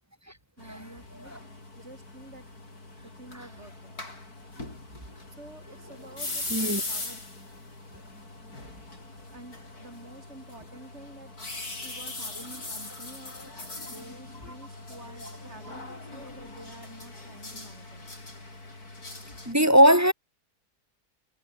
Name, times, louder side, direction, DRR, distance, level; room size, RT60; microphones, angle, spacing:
sound 1, 0.6-19.5, left 2 dB, 65° left, 6.4 m, -41 dB
voice 1, 0.6-1.3 1.8-2.4 3.0-4.0 5.0-7.2 9.3-11.3 11.7-18.1 19.4-20.0, right 2 dB, 40° right, 7.2 m, -49 dB
voice 2, 6.5-6.8 14.4-14.5 15.2-15.3 19.5-20.1, equal, 10° right, 3.7 m, -20 dB
omnidirectional pair, 1.8 m